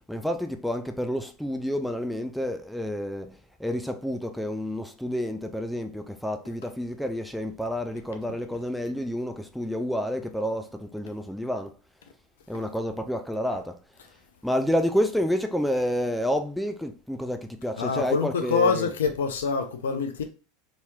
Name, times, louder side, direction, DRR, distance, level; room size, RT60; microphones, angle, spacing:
voice 1, 0.1-11.7 12.5-13.8 14.4-18.9, equal, ahead, 0.4 m, -29 dB
voice 2, 17.8-20.2, left 5 dB, 75° left, 0.5 m, -25 dB
3.0 x 2.8 x 2.3 m
figure-of-eight pair, 80°, 0 cm